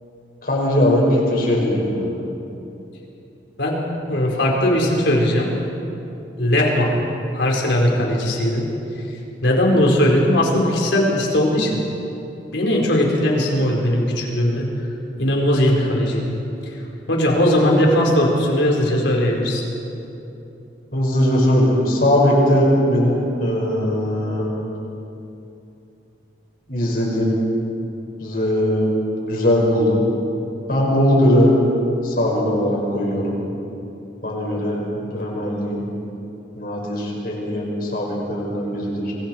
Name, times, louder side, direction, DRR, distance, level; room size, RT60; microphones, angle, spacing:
voice 1, 0.4-2.0 20.9-24.5 26.7-27.3 28.2-29.0 29.2-30.1 30.7-31.5 32.0-33.3 34.2-35.8 36.6-39.1, equal, 55° left, -2 dB, 5.8 m, -19 dB
voice 2, 4.1-5.5 6.4-6.9 7.3-8.6 9.4-11.8 12.5-14.7 15.2-16.2 17.1-19.6, left 1 dB, 90° left, -1 dB, 4.5 m, -18 dB
25.5 x 25.5 x 4.6 m, 2.9 s
head